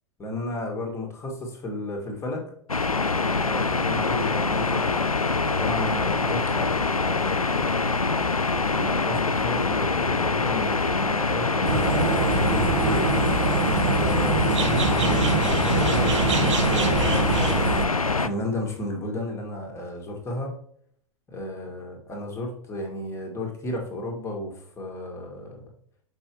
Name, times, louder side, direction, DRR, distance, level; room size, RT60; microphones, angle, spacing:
voice 1, 0.2-2.5 3.4-5.0 5.4-7.7 8.7-13.1 13.7-17.9 18.2-20.5 21.3-25.7, left 1 dB, 15° left, 1 dB, 1.7 m, -33 dB
sound 1, 2.7-18.3, left 4 dB, 90° left, 0.4 m, -24 dB
sound 2, 11.6-17.9, right 5 dB, 60° right, 0.9 m, -24 dB
6.1 x 5.6 x 2.9 m, 0.63 s
figure-of-eight pair, 100°, 18 cm